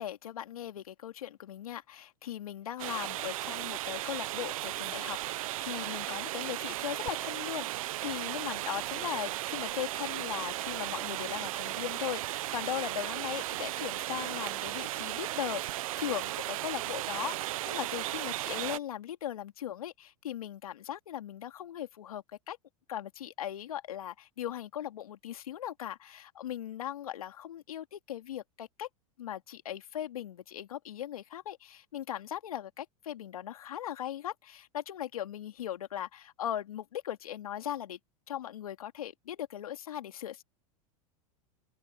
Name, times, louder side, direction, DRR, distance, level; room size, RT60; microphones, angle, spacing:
voice 1, 0.0-22.6 22.9-28.9 29.2-38.0 38.3-40.4, left 11 dB, 80° left, 2.5 m, -39 dB
sound 1, 2.8-18.8, right 16 dB, 70° right, 0.9 m, -36 dB
open air
hypercardioid pair, 95°, 18 cm